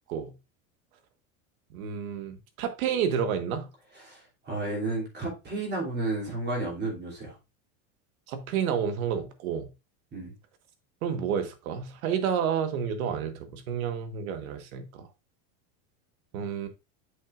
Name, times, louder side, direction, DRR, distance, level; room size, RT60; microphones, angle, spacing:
voice 1, 1.7-3.7 8.3-9.7 11.0-15.1 16.3-16.7, right 7 dB, 85° right, 1.4 m, -30 dB
voice 2, 3.9-7.3 10.1-10.3, right 2 dB, 25° right, 2.8 m, -32 dB
7.8 x 6.3 x 2.5 m
supercardioid pair, 145°, 41 cm